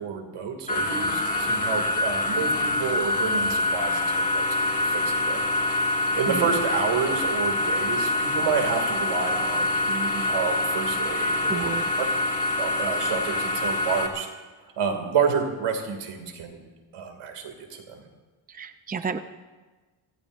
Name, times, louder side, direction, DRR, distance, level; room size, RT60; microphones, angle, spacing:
voice 1, 0.0-5.9 6.2-11.7 12.0-12.1 12.6-14.3 14.8-16.6 16.9-18.0, right 6 dB, 90° right, 4 dB, 2.7 m, -29 dB
sound 1, 0.7-14.1, left 2 dB, 15° left, 2.2 m, -25 dB
voice 2, 11.5-11.8 18.5-19.2, right 5 dB, 15° right, 9 dB, 0.7 m, -30 dB
29.0 x 16.5 x 2.7 m, 1.3 s
cardioid pair, 105°, 50 cm